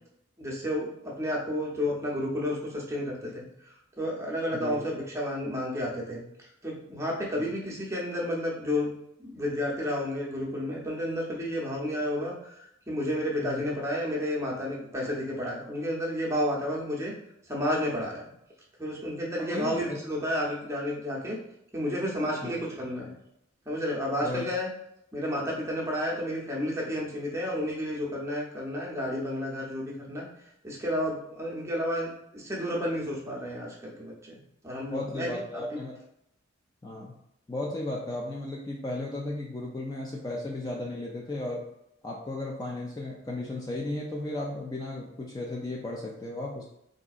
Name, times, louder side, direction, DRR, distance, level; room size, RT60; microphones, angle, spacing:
voice 1, 0.4-6.2 6.6-8.9 9.2-17.1 17.5-18.3 18.8-21.4 21.7-23.1 23.7-24.7 25.1-30.3 30.6-34.1 34.6-35.4 35.7-35.8, equal, 15° right, -4 dB, 0.7 m, -31 dB
voice 2, 4.5-4.8 7.4-7.5 13.4-13.7 19.4-20.0 22.4-22.5 24.2-24.5 34.9-35.9 36.8-37.1 37.5-41.6 42.0-46.6, left 2 dB, 20° left, -2 dB, 0.3 m, -35 dB
3.8 x 2.6 x 2.4 m, 0.77 s
head